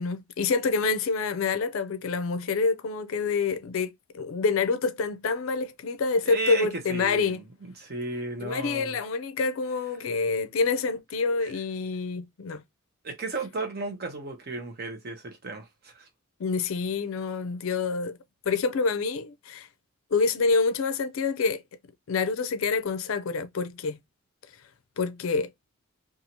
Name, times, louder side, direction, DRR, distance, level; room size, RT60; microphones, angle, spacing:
voice 1, 0.0-7.4 8.4-12.6 16.4-18.2 18.5-19.7 20.1-21.6 22.1-24.0 25.0-25.5, left 4 dB, 65° left, 0.4 m, -27 dB
voice 2, 6.2-9.0 11.4-11.5 13.0-16.1, right 3 dB, 45° right, 0.7 m, -34 dB
2.7 x 2.4 x 2.8 m
head